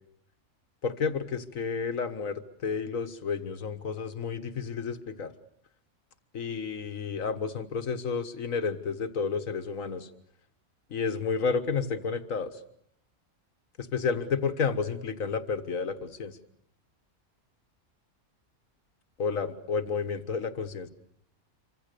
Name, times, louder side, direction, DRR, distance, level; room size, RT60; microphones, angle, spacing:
voice 1, 0.8-5.3 6.3-10.1 10.9-12.6 13.8-16.4 19.2-20.9, left 5 dB, 70° left, 9 dB, 1.8 m, -31 dB
27.0 x 25.5 x 6.8 m, 0.72 s
omnidirectional pair, 1.5 m